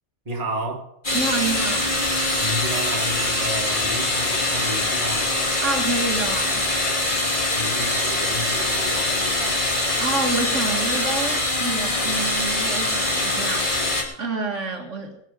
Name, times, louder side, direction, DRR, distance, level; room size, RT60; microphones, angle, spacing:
voice 1, 0.3-0.9 2.4-5.3 7.0-9.7, right 1 dB, 30° right, 1.9 m, -32 dB
sound 1, 1.0-14.0, left 2 dB, 40° left, 2.8 m, -23 dB
voice 2, 1.1-1.9 5.6-6.7 10.0-13.8 14.2-15.2, right 3 dB, 75° right, 2.2 m, -28 dB
21.0 x 8.0 x 5.2 m
omnidirectional pair, 1.3 m